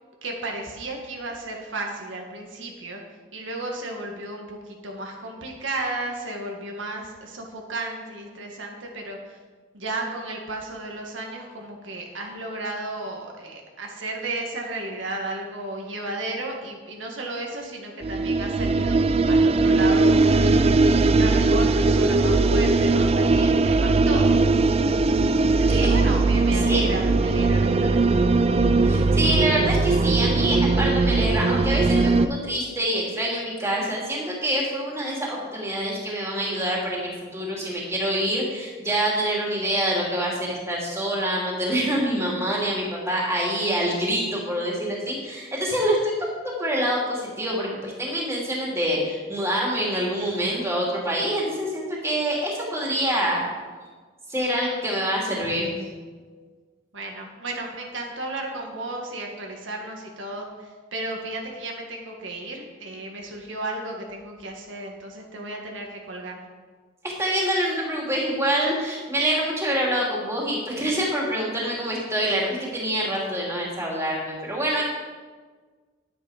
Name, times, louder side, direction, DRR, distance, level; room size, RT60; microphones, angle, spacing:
voice 1, 0.2-3.0 3.3-9.4 9.7-20.4 20.6-24.4 25.6-28.3 56.9-66.5, right 2 dB, 85° right, 0 dB, 1.7 m, -34 dB
sound 1, 18.0-32.3, right 3 dB, 30° right, 0.4 m, -19 dB
voice 2, 28.8-53.4 54.3-55.7 56.2-56.3 67.0-74.8, equal, 15° right, -4 dB, 2.8 m, -26 dB
10.5 x 8.9 x 5.0 m, 1.4 s
head